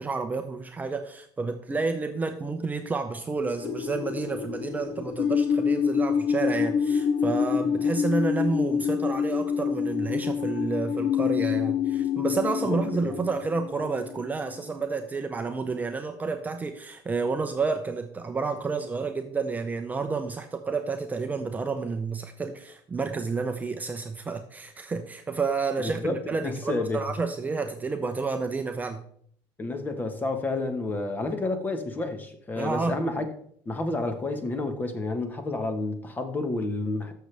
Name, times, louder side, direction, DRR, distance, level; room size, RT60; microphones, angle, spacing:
voice 1, 0.0-29.0 32.5-33.0, right 4 dB, 15° right, 0.7 m, -30 dB
sound 1, 3.6-14.5, left 7 dB, 50° left, 0.5 m, -27 dB
voice 2, 12.7-13.2 25.8-27.0 29.6-33.3 33.6-37.1, left 2 dB, 20° left, 1.3 m, -30 dB
13.0 x 6.6 x 3.4 m
cardioid pair, 135°, 9 cm